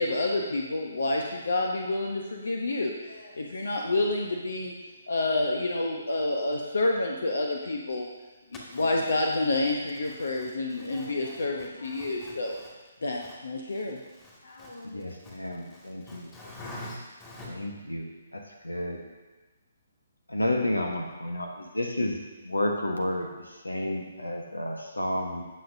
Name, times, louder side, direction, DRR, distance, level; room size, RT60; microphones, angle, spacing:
voice 1, 0.0-4.7 5.1-8.1 8.7-12.6 13.0-14.0 14.4-14.7, left 2 dB, 60° left, 1 dB, 0.9 m, -28 dB
voice 2, 8.7-9.1 10.9-11.1 12.0-12.3 14.6-14.7 16.1-17.5, left 1 dB, 15° left, -4 dB, 2.2 m, -42 dB
voice 3, 14.9-16.3 17.5-18.1 18.3-19.0 20.3-22.2 22.5-25.4, left 1 dB, 80° left, 3 dB, 1.2 m, -31 dB
17.0 x 6.4 x 2.7 m, 1.2 s
figure-of-eight pair, 135°, 0 cm